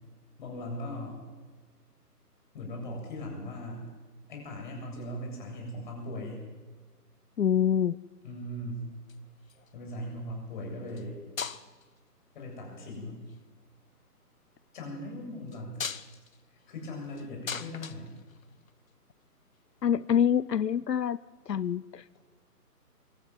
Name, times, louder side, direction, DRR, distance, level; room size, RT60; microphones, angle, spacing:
voice 1, 0.4-1.2 2.5-3.8 4.3-6.4 8.2-8.8 9.7-11.2 12.3-13.2 14.7-15.9 16.7-18.1, left 1 dB, 30° left, 0 dB, 7.6 m, -39 dB
voice 2, 7.4-8.0 19.8-21.2 21.5-22.2, left 8 dB, 80° left, 19 dB, 0.7 m, -26 dB
sound 1, 8.9-9.8 10.9-11.1 11.4-12.0 12.9-13.4 15.5-18.9 20.2-20.3, left 6 dB, 55° left, 1.2 m, -40 dB
24.0 x 13.0 x 9.6 m, 1.3 s
figure-of-eight pair, 155°, 48 cm